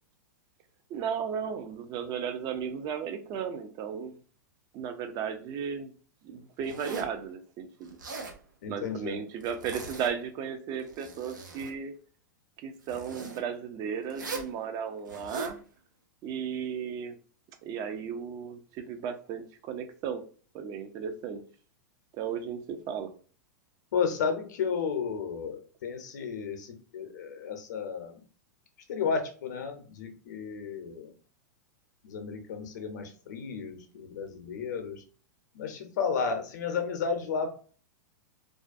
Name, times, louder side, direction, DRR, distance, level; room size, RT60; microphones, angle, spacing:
voice 1, 0.9-4.2 4.7-5.9 6.2-8.0 8.7-11.9 12.6-15.6 16.2-17.2 17.6-20.2 20.5-21.4 22.1-23.1, right 7 dB, 40° right, 0.4 m, -35 dB
Zipper (clothing), 6.6-7.2 7.9-8.4 9.4-10.3 10.7-11.8 12.8-13.4 14.1-14.5 15.1-15.6, right 3 dB, 85° right, 0.6 m, -40 dB
voice 2, 8.6-9.2 23.9-28.2 28.9-31.1 32.0-35.0 35.5-37.5, left 6 dB, 65° left, 0.6 m, -33 dB
2.4 x 2.2 x 2.5 m
hypercardioid pair, 105°, 10 cm